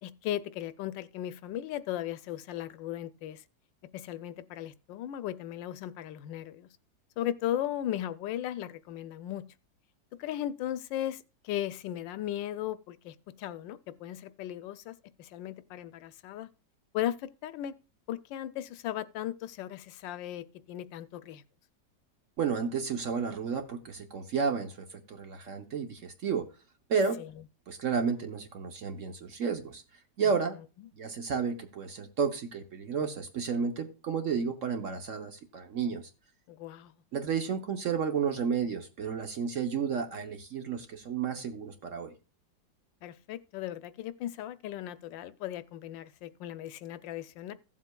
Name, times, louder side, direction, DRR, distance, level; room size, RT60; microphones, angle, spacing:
voice 1, 0.0-3.4 3.9-6.7 7.2-9.4 10.2-16.5 16.9-17.7 18.1-21.4 27.2-27.3 30.2-30.9 36.5-36.9 43.0-47.5, left 12 dB, 80° left, 1.3 m, -37 dB
voice 2, 22.4-26.5 26.9-27.2 27.7-29.8 30.2-30.6 30.9-36.1 37.1-42.1, right 6 dB, 55° right, 1.0 m, -32 dB
16.0 x 7.4 x 2.3 m
omnidirectional pair, 2.0 m